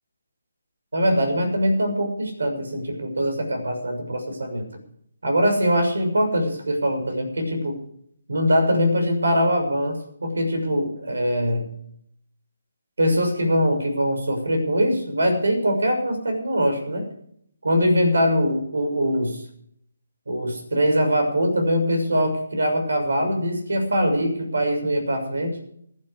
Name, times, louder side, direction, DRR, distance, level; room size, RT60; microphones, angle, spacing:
voice 1, 0.9-4.7 5.2-7.7 8.3-11.7 13.0-17.1 17.6-19.4 20.3-25.5, equal, 75° right, 5 dB, 6.4 m, -22 dB
18.0 x 12.0 x 5.1 m, 0.68 s
figure-of-eight pair, 150°, 0 cm